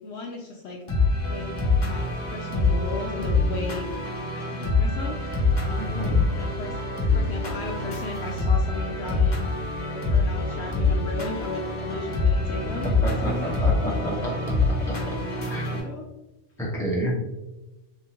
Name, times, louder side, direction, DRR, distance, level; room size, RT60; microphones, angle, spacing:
voice 1, 0.0-0.8 1.3-1.5 1.8-3.9 4.3-6.0 6.4-6.7 7.1-9.5 9.8-13.7 15.3-16.0, left 3 dB, 65° left, 0 dB, 0.8 m, -36 dB
sound 1, 0.9-15.8, left 3 dB, 40° left, 1.0 m, -25 dB
voice 2, 5.8-6.2 13.0-14.3 15.5-15.9 16.6-17.1, right 1 dB, ahead, -5 dB, 1.1 m, -29 dB
3.7 x 3.4 x 2.9 m, 1.0 s
omnidirectional pair, 1.3 m